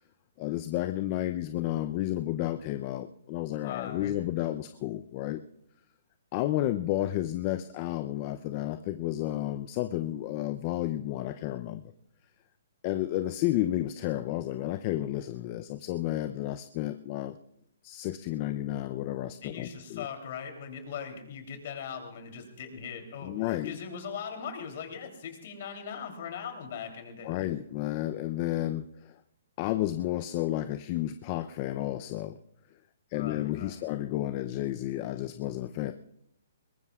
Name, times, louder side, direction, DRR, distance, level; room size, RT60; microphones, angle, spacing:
voice 1, 0.4-5.4 6.3-11.9 12.8-17.4 17.8-20.1 23.2-23.8 27.2-29.2 29.6-32.4 33.1-35.9, left 14 dB, 35° left, 10 dB, 0.6 m, -31 dB
voice 2, 3.6-4.1 19.4-23.3 23.6-27.5 33.1-33.9, left 7 dB, 55° left, 5 dB, 3.3 m, -40 dB
22.0 x 19.5 x 2.4 m, 0.74 s
hypercardioid pair, 150°, 0 cm